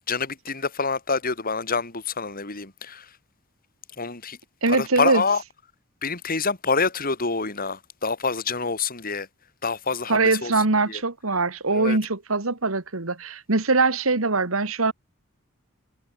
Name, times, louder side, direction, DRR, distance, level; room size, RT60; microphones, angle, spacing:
voice 1, 0.1-3.0 4.0-4.4 4.7-5.4 6.0-9.3 9.6-10.5 10.9-11.0 11.7-12.0, left 4 dB, 45° left, 3.5 m, -27 dB
voice 2, 4.6-5.2 10.1-14.9, right 3 dB, 85° right, 2.1 m, -22 dB
head